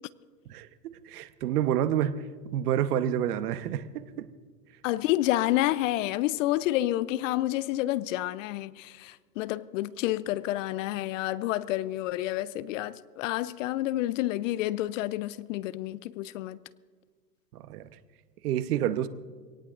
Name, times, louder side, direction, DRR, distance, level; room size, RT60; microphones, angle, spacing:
voice 1, 1.1-2.1 2.4-4.3 17.5-17.9 18.4-19.1, right 11 dB, 65° right, 1.1 m, -28 dB
voice 2, 4.8-16.6, left 15 dB, 50° left, 0.7 m, -29 dB
25.5 x 18.0 x 2.6 m
hypercardioid pair, 115°, 50 cm